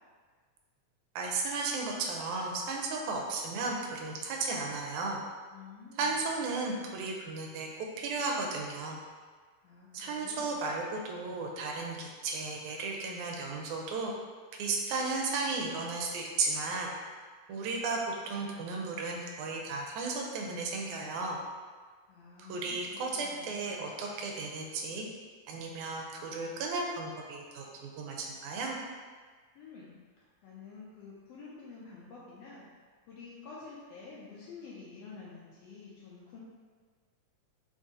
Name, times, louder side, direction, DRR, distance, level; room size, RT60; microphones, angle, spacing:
voice 1, 1.2-5.2 6.0-7.7 8.0-9.0 9.9-14.1 14.6-16.9 17.5-21.4 22.5-25.1 25.5-28.8, right 3 dB, 85° right, 0 dB, 2.1 m, -34 dB
voice 2, 5.5-6.2 9.6-10.6 22.1-23.7 29.5-36.4, left 4 dB, 75° left, -6 dB, 1.5 m, -50 dB
5.1 x 2.7 x 3.7 m, 1.5 s
omnidirectional pair, 3.4 m